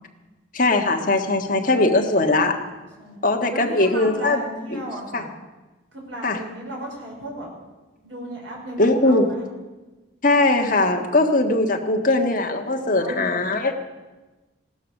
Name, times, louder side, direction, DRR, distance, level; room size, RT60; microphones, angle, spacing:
voice 1, 0.5-2.5 3.2-4.4 4.7-4.9 5.1-5.2 6.2-6.4 8.8-9.3 10.2-13.7, left 2 dB, 45° left, 3 dB, 1.6 m, -20 dB
voice 2, 1.4-2.6 3.0-3.2 3.5-5.3 5.9-7.5 8.0-9.4 10.6-11.1 12.9-13.2, right 1 dB, 85° right, -2 dB, 5.3 m, -36 dB
17.0 x 12.0 x 6.4 m, 1.2 s
head